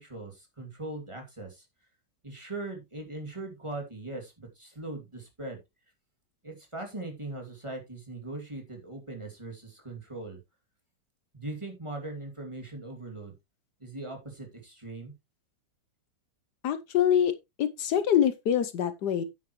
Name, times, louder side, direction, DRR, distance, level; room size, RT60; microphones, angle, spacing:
voice 1, 0.0-1.7 2.2-5.6 6.4-10.4 11.3-13.3 13.8-15.1, right 2 dB, 15° right, 2.5 m, -40 dB
voice 2, 16.6-19.2, left 9 dB, 70° left, 1.4 m, -25 dB
9.3 x 8.8 x 3.1 m
omnidirectional pair, 1.9 m